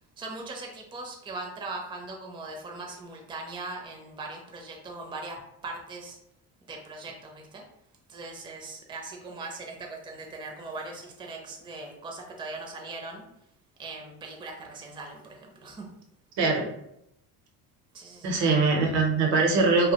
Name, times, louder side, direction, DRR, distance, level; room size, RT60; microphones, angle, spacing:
voice 1, 0.2-6.2 6.7-7.6 8.1-13.2 13.8-15.9 17.9-18.5, right 3 dB, 10° right, 1 dB, 0.4 m, -40 dB
voice 2, 16.4-16.7 18.2-19.9, right 3 dB, 70° right, 2 dB, 0.8 m, -22 dB
2.2 x 2.1 x 2.8 m, 0.78 s
supercardioid pair, 80°, 45 cm